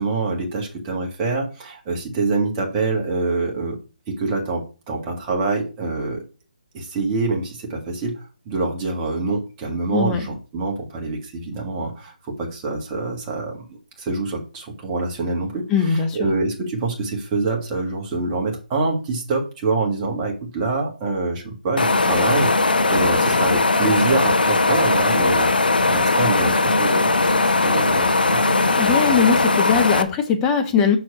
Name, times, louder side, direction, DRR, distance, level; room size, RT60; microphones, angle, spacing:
voice 1, 0.0-3.8 4.1-6.2 6.7-25.5 25.9-28.4, right 3 dB, 20° right, 0 dB, 1.7 m, -25 dB
voice 2, 9.9-10.2 15.7-16.2 28.8-31.0, left 6 dB, 15° left, 4 dB, 1.0 m, -20 dB
sound 1, 21.8-30.0, left 3 dB, 80° left, 1.0 m, -19 dB
6.1 x 4.6 x 4.9 m, 0.34 s
figure-of-eight pair, 155°, 5 cm